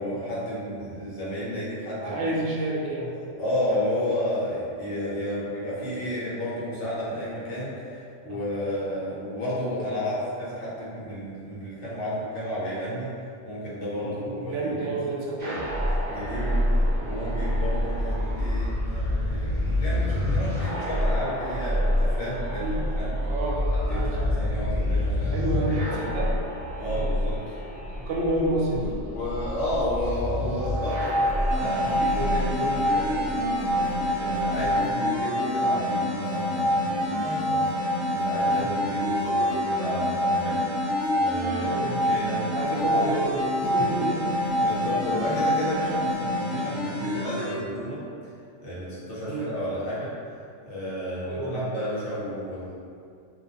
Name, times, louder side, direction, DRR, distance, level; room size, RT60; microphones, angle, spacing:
voice 1, 0.0-2.3 3.2-13.1 13.4-15.0 16.1-23.2 23.9-26.2 26.8-27.8 29.1-42.4 43.8-43.9 44.3-48.0 48.6-50.1 50.6-52.8, left 1 dB, 75° left, -9 dB, 1.2 m, -32 dB
voice 2, 2.0-3.1 14.0-15.6 22.6-22.8 23.3-23.6 23.9-24.2 25.3-26.3 26.8-27.0 28.1-28.8 38.4-38.6 41.6-42.0 42.5-44.4 49.3-49.5 51.2-51.7, right 1 dB, 85° right, -3 dB, 0.9 m, -29 dB
sound 1, 15.4-34.8, left 1 dB, 45° right, 0.7 m, -28 dB
sound 2, 30.5-46.4, equal, 45° left, 0.9 m, -27 dB
sound 3, 31.5-47.5, left 1 dB, ahead, 0.8 m, -31 dB
2.5 x 2.4 x 2.7 m, 2.4 s
omnidirectional pair, 1.2 m